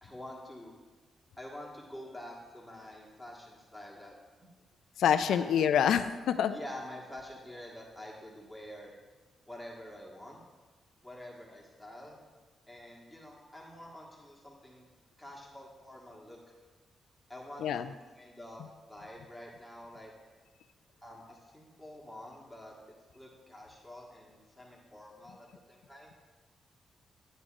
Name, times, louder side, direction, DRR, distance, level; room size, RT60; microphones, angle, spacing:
voice 1, 0.0-0.7 1.4-4.2 4.4-4.5 5.3-5.7 6.5-8.9 9.5-10.4 11.0-12.2 12.7-14.9 15.2-16.5 17.3-18.6 18.9-20.1 21.0-22.7 23.1-26.1, left 1 dB, 5° left, -3 dB, 1.5 m, -47 dB
voice 2, 5.0-6.6 17.6-17.9, left 8 dB, 85° left, 11 dB, 0.4 m, -26 dB
11.0 x 8.0 x 2.5 m, 1.3 s
cardioid pair, 80°, 0 cm